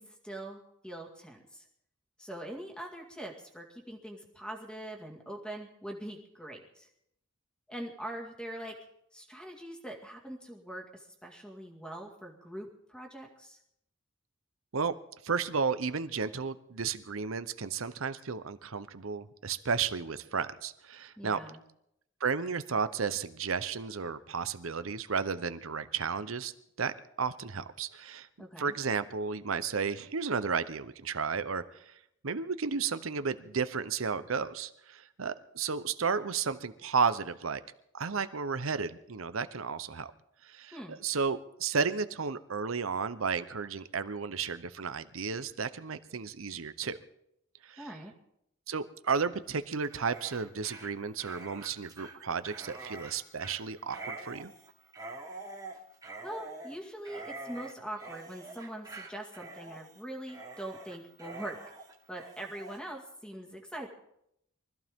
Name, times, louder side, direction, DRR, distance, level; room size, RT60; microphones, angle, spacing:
voice 1, 0.0-1.6 2.2-6.9 7.7-8.7 9.1-13.6 21.2-21.6 28.4-28.8 40.7-41.0 47.8-48.1 56.2-61.6 62.1-63.9, right 1 dB, 5° left, 1 dB, 2.0 m, -43 dB
voice 2, 15.2-21.4 22.2-26.5 26.8-26.9 27.2-28.3 28.6-31.9 32.2-37.6 37.9-40.1 40.4-47.0 47.6-47.9 48.7-54.5, right 5 dB, 80° right, 13 dB, 0.9 m, -33 dB
Dog, 49.8-62.8, right 2 dB, 20° right, 2.1 m, -46 dB
23.5 x 14.5 x 3.7 m, 0.78 s
head